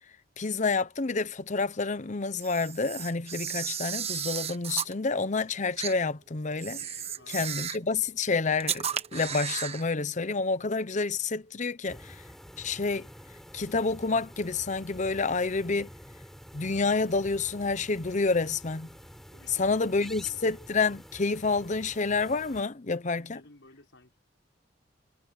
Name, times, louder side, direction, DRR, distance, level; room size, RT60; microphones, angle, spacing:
voice 1, 0.4-6.8 7.3-12.2 12.6-13.1 13.5-15.9 16.5-18.9 19.6-23.4, left 4 dB, 40° left, 0.8 m, -29 dB
Camera, 2.4-4.9 5.8-5.9 6.6-7.9 8.6-9.8, right 8 dB, 35° right, 1.2 m, -34 dB
voice 2, 7.1-7.7 19.3-20.4 23.2-24.2, left 2 dB, 85° left, 5.6 m, -56 dB
sound 1, 11.9-22.6, equal, ahead, 4.4 m, -49 dB
head